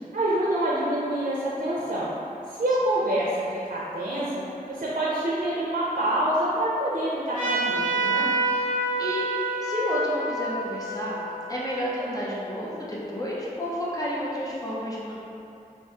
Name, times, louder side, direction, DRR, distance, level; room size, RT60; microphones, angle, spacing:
voice 1, 0.1-2.1 2.5-4.4 4.7-8.2, right 1 dB, 60° right, -7 dB, 0.5 m, -26 dB
Trumpet, 7.3-12.4, right 2 dB, 55° left, 1.4 m, -28 dB
voice 2, 9.6-11.2 11.5-15.2, equal, 25° left, -7 dB, 0.6 m, -30 dB
3.0 x 2.6 x 3.4 m, 2.7 s
wide cardioid pair, 55°, 15 cm